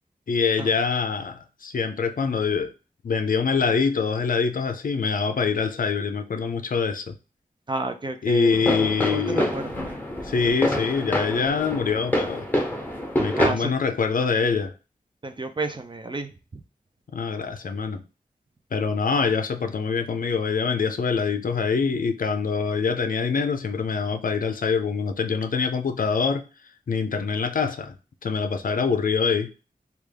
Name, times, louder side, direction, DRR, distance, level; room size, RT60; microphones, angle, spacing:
voice 1, 0.3-2.7 3.0-7.2 8.2-9.5 10.2-12.5 13.2-14.7 17.1-18.0 18.7-26.4 26.9-28.0 28.2-29.5, left 5 dB, 65° left, 0.4 m, -24 dB
voice 2, 7.7-8.6 9.1-9.8 13.4-13.7 15.2-16.6, right 3 dB, 30° right, 0.5 m, -31 dB
sound 1, 8.5-13.5, left 1 dB, 10° left, 1.0 m, -26 dB
3.4 x 2.3 x 3.3 m
wide cardioid pair, 65°, 15 cm